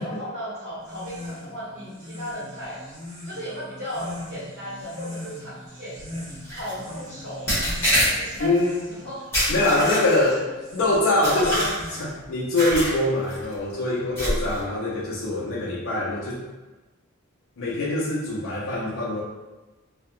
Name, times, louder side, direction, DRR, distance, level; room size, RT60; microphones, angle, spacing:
voice 1, 0.0-2.8 3.2-7.7 8.0-8.6 8.9-9.2 9.7-10.4 11.3-12.0, equal, 65° right, -11 dB, 1.2 m, -35 dB
sound 1, 0.8-12.3, left 1 dB, 35° right, 0.5 m, -41 dB
sound 2, 6.5-6.7 7.5-8.5 9.3-10.3 11.2-12.0 12.6-13.0 13.3-13.5 14.2-14.6, equal, 10° left, 0.7 m, -25 dB
voice 2, 8.4-8.8 9.5-10.4 10.7-11.6 12.0-16.4 17.6-19.2, left 2 dB, 65° left, -5 dB, 0.4 m, -24 dB
2.4 x 2.0 x 2.6 m, 1.2 s
head